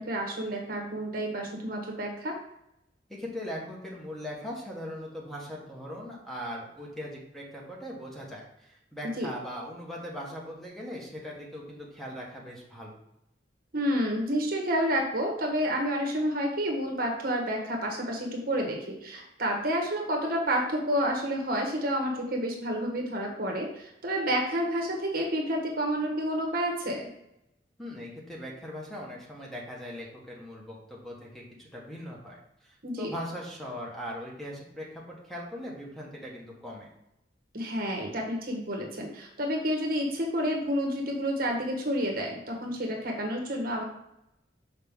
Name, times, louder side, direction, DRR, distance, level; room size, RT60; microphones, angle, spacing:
voice 1, 0.0-2.4 9.2-9.3 13.7-27.1 32.8-33.1 37.5-43.8, equal, 55° right, 1 dB, 1.4 m, -29 dB
voice 2, 3.1-13.0 27.8-36.9, equal, ahead, -3 dB, 1.4 m, -40 dB
6.6 x 4.8 x 3.7 m, 0.83 s
head